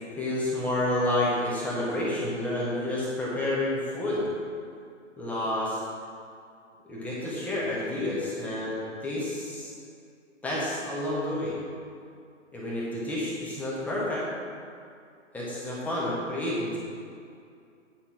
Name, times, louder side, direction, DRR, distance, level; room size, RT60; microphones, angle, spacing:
voice 1, 0.2-4.3 5.2-5.8 6.9-9.7 10.4-11.5 12.5-14.3 15.3-16.8, left 1 dB, 5° left, -7 dB, 1.4 m, -29 dB
9.1 x 5.7 x 5.8 m, 2.4 s
figure-of-eight pair, 130°, 38 cm